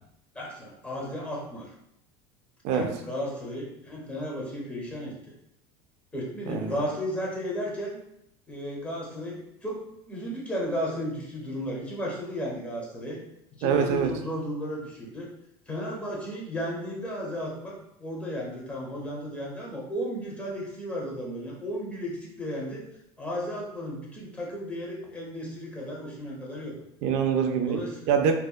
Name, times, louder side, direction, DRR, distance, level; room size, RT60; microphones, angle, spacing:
voice 1, 0.3-1.7 2.7-5.3 6.1-8.0 8.5-13.2 13.6-15.3 15.7-22.8 23.2-26.7 27.7-28.1, equal, 10° left, -3 dB, 0.7 m, -34 dB
voice 2, 6.5-6.8 13.6-14.1 27.0-27.8 28.1-28.3, right 7 dB, 55° right, 5 dB, 0.4 m, -24 dB
2.7 x 2.1 x 2.2 m, 0.78 s
supercardioid pair, 135°, 13 cm